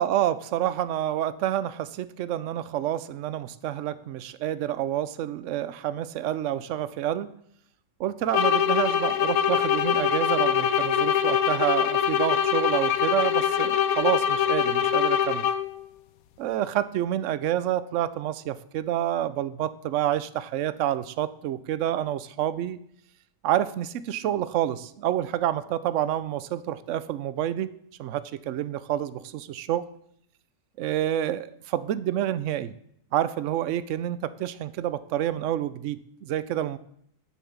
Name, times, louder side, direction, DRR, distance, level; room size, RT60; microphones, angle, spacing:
voice 1, 0.0-7.3 8.0-15.5 16.4-22.8 23.4-27.7 28.0-29.8 30.8-32.7 33.1-36.8, right 12 dB, 75° right, 15 dB, 0.7 m, -28 dB
sound 1, 8.3-15.8, left 9 dB, 65° left, 1.0 m, -23 dB
10.5 x 6.9 x 7.1 m, 0.71 s
omnidirectional pair, 1.9 m